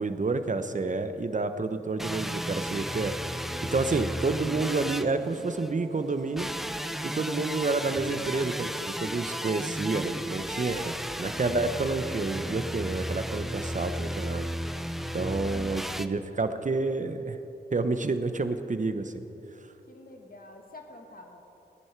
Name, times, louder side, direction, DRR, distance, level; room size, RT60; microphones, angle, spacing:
voice 1, 0.0-3.1 3.7-6.5 7.0-8.7 9.0-14.5 15.1-17.4 17.7-19.2, right 3 dB, 45° right, 9 dB, 1.0 m, -29 dB
sound 1, 2.0-5.7 6.4-16.1, equal, ahead, 0.7 m, -34 dB
voice 2, 4.0-4.4 19.9-21.4, left 2 dB, 55° left, 2 dB, 2.0 m, -50 dB
sound 2, 4.9-13.1 13.5-14.3 15.6-15.9, right 3 dB, 65° right, 2.0 m, -52 dB
18.5 x 10.5 x 4.7 m, 2.9 s
cardioid pair, 40°, 18 cm